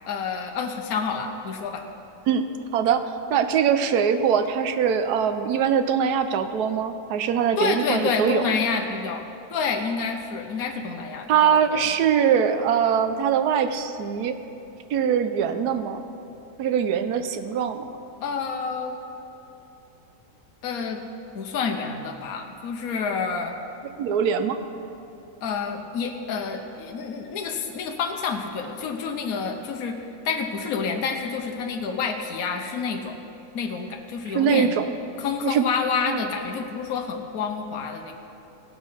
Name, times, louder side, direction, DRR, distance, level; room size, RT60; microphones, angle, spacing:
voice 1, 0.1-1.8 7.6-9.2 9.5-11.9 18.2-18.9 20.6-21.0 21.3-23.5 25.4-30.0 30.2-33.1 33.5-34.7 35.2-38.1, left 5 dB, 70° left, 3 dB, 1.3 m, -28 dB
voice 2, 2.7-3.0 3.3-8.4 11.3-14.3 14.9-16.0 16.6-17.9 24.0-24.6 34.3-34.9 35.4-35.6 36.1-36.2, right 7 dB, 80° right, 8 dB, 1.2 m, -22 dB
18.0 x 6.3 x 5.6 m, 3.0 s
omnidirectional pair, 1.7 m